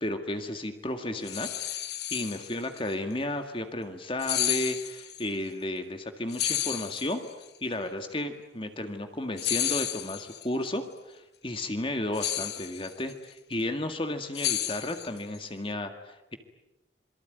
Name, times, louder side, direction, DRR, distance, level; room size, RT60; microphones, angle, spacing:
voice 1, 0.0-7.2 7.6-16.4, left 1 dB, 30° left, 7 dB, 1.9 m, -33 dB
sound 1, 1.2-2.8 4.2-5.2 6.3-7.4 9.4-10.5 12.1-13.1 14.4-15.4, left 12 dB, 60° left, 1.2 m, -31 dB
27.0 x 23.5 x 9.3 m, 0.96 s
head